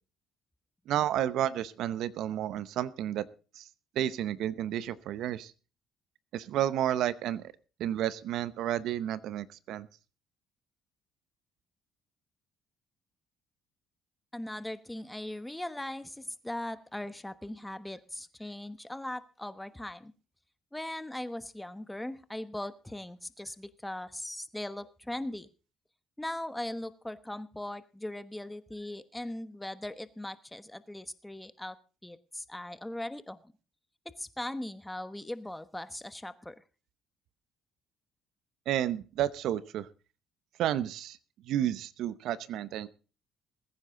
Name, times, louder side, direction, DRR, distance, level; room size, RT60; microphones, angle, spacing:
voice 1, 0.9-3.2 3.6-3.7 4.0-5.5 6.3-7.4 7.8-9.9 38.7-39.9 40.6-41.2 41.5-42.9, right 11 dB, 75° right, 17 dB, 0.8 m, -31 dB
voice 2, 14.3-20.1 20.7-25.5 26.2-33.5 34.2-36.6, left 1 dB, 10° left, 13 dB, 1.2 m, -39 dB
21.0 x 9.6 x 3.8 m, 0.35 s
supercardioid pair, 80°, 0 cm